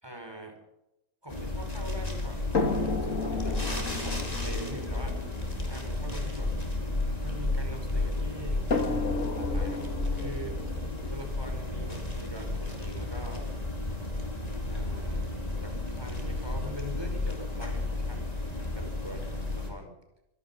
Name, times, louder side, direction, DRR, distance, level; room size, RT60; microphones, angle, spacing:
voice 1, 0.0-0.6 1.2-5.2 5.7-6.6 7.2-8.7 9.2-10.6 11.1-13.5 14.6-18.3 18.6-20.0, equal, 15° right, 4 dB, 5.0 m, -43 dB
sound 1, 1.3-19.7, left 2 dB, 25° left, 4.8 m, -33 dB
sound 2, 2.5-7.8 8.7-12.7 13.6-13.7 14.2-14.3, left 3 dB, 65° left, 2.4 m, -34 dB
26.0 x 17.5 x 5.7 m, 0.90 s
omnidirectional pair, 1.5 m